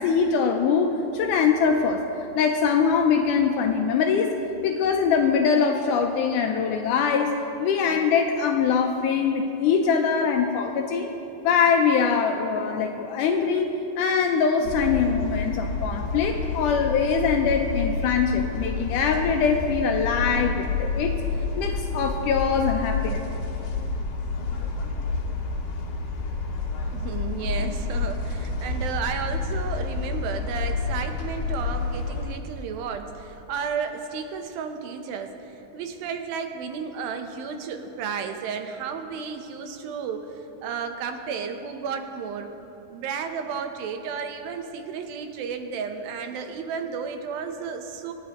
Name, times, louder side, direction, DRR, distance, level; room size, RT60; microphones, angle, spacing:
voice 1, 0.0-2.1 2.4-4.4 4.6-11.1 11.4-21.1 21.6-23.2, left 6 dB, 80° left, 4 dB, 1.9 m, -23 dB
sound 1, 14.6-32.3, left 4 dB, 60° left, 2.7 m, -29 dB
voice 2, 26.9-40.3 40.6-42.5 42.9-48.1, right 6 dB, 85° right, 6 dB, 2.6 m, -33 dB
25.5 x 9.5 x 3.0 m, 2.9 s
omnidirectional pair, 4.1 m